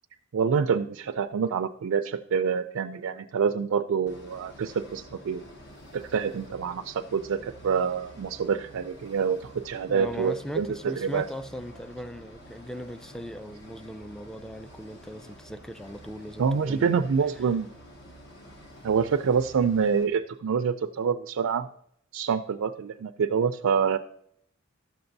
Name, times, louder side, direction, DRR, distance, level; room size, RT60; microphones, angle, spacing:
voice 1, 0.3-5.4 5.9-11.3 16.4-17.7 18.8-21.7 22.1-24.0, right 6 dB, 85° right, 0.4 m, -26 dB
sound 1, 4.1-20.1, equal, 60° left, 1.2 m, -49 dB
voice 2, 9.9-17.0, equal, 5° left, 0.3 m, -39 dB
12.0 x 6.9 x 2.6 m
head